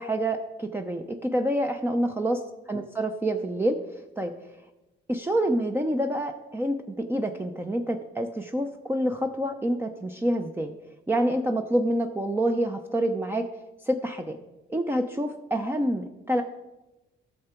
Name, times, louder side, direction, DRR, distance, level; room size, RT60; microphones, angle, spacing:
voice 1, 0.0-2.4 2.7-4.3 5.1-10.7 11.1-13.5 13.8-14.4 14.7-16.4, right 1 dB, 10° right, 5 dB, 0.6 m, -27 dB
12.5 x 6.8 x 4.4 m, 1.0 s
cardioid pair, 90°, 20 cm